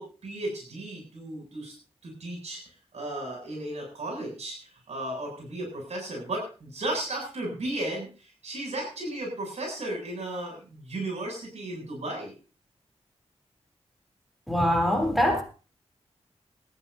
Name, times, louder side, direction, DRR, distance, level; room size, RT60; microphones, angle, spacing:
voice 1, 0.0-1.8 2.0-2.6 2.9-12.3, right 1 dB, 80° right, 8.0 m, -35 dB
voice 2, 14.5-15.4, equal, ahead, 3.6 m, -23 dB
20.0 x 14.5 x 2.8 m
wide cardioid pair, 90°, 11 cm